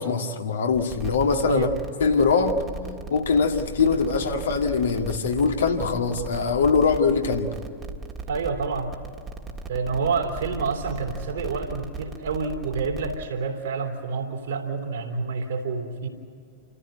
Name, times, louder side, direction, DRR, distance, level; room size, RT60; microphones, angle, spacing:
voice 1, 0.0-1.7 2.0-2.6 3.1-7.5, left 5 dB, 65° left, 1.9 m, -22 dB
sound 1, 0.7-13.2, right 3 dB, 25° right, 1.7 m, -37 dB
voice 2, 8.3-8.9 9.7-16.1, right 4 dB, 65° right, 3.1 m, -28 dB
28.5 x 14.5 x 9.2 m
figure-of-eight pair, 90°, 0 cm